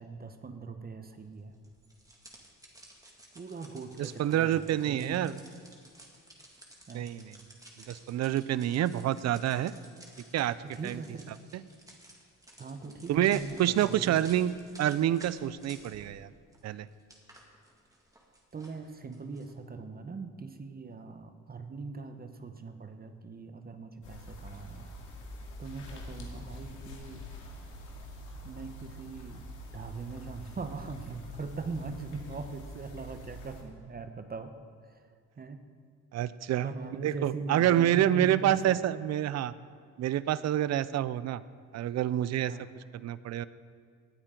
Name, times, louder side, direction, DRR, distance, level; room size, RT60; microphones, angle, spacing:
voice 1, 0.0-1.6 3.3-5.3 6.9-7.1 10.6-11.3 12.6-14.2 18.5-24.9 25.6-27.2 28.4-29.4 29.7-34.5 34.8-35.1 35.4-35.6 36.6-38.8 40.7-40.9 42.4-42.7, right 4 dB, 30° right, 8 dB, 0.9 m, -41 dB
sound 1, 1.6-16.2 16.5-19.5, right 1 dB, 10° right, 2.1 m, -54 dB
voice 2, 4.0-5.4 6.9-7.3 7.9-9.7 10.3-10.6 10.8-11.0 11.5-11.6 13.1-14.5 14.8-16.3 16.6-16.9 36.1-36.7 37.0-39.5 40.0-41.4 41.7-42.5 43.0-43.5, right 12 dB, 60° right, 17 dB, 0.5 m, -27 dB
sound 2, 24.0-33.6, equal, 80° left, 2.3 m, -45 dB
18.5 x 9.0 x 3.8 m, 2.2 s
cardioid pair, 90°, 30 cm